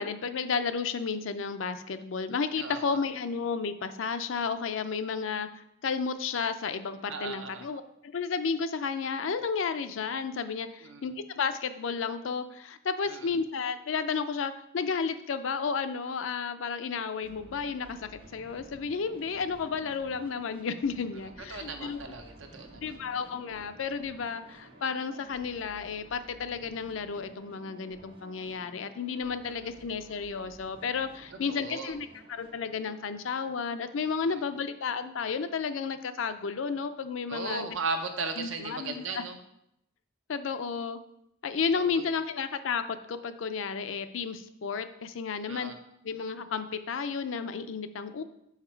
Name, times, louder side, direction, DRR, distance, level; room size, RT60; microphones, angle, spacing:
voice 1, 0.0-5.5 5.8-18.0 18.3-22.0 22.8-37.7 38.4-39.2 40.3-41.0 41.4-42.8 43.1-45.7 46.0-48.2, left 5 dB, 80° left, 10 dB, 0.5 m, -32 dB
voice 2, 7.1-7.7 10.8-11.1 13.1-13.3 21.5-23.0 31.5-31.9 34.2-34.3 37.3-39.4 41.7-42.1 45.5-45.7, right 4 dB, 75° right, 5 dB, 0.8 m, -36 dB
sound 1, 17.2-33.1, right 1 dB, 25° right, 0.8 m, -53 dB
5.8 x 4.9 x 4.5 m, 0.79 s
head